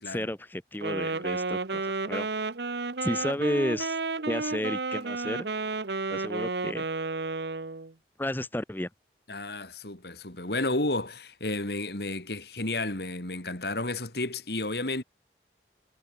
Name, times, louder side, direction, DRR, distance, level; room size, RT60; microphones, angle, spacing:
voice 1, 0.0-2.5 3.0-4.0 4.3-5.5 6.1-6.9 8.2-8.9, left 1 dB, 10° left, 0.8 m, -32 dB
Wind instrument woodwind instrument, 0.7-7.9, right 3 dB, 75° right, 1.1 m, -32 dB
voice 2, 9.3-15.0, left 2 dB, 65° left, 3.7 m, -32 dB
head